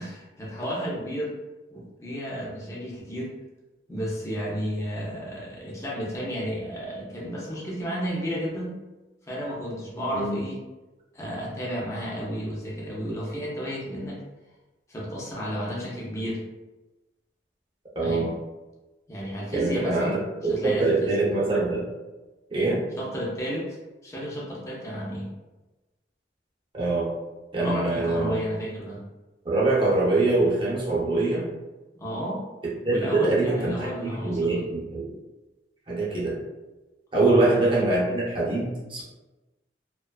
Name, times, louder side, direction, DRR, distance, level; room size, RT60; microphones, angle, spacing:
voice 1, 0.0-1.3 1.7-3.3 3.9-8.7 9.2-10.6 11.1-14.2 14.9-16.4 18.0-18.3 19.1-20.2 20.5-21.2 23.0-23.8 24.0-25.3 27.6-29.0 32.0-32.4 32.9-34.6 37.2-37.5, equal, 15° left, -5 dB, 0.5 m, -32 dB
voice 2, 18.0-18.3 19.5-21.8 22.5-22.8 26.7-27.1 27.5-28.4 29.4-31.4 32.6-35.1 35.9-36.4 37.1-39.0, right 2 dB, 30° right, -5 dB, 0.6 m, -24 dB
2.4 x 2.2 x 2.2 m, 1.1 s
head